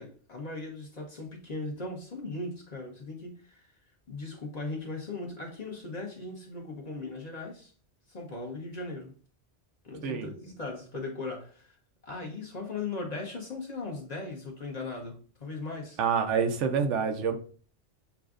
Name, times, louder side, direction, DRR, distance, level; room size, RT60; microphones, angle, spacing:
voice 1, 0.0-3.7 4.1-7.7 8.1-9.1 9.8-11.8 12.0-16.0, left 3 dB, 40° left, -1 dB, 1.0 m, -38 dB
voice 2, 16.0-17.4, right 6 dB, 90° right, 7 dB, 1.0 m, -27 dB
6.9 x 2.4 x 2.4 m, 0.41 s
omnidirectional pair, 1.2 m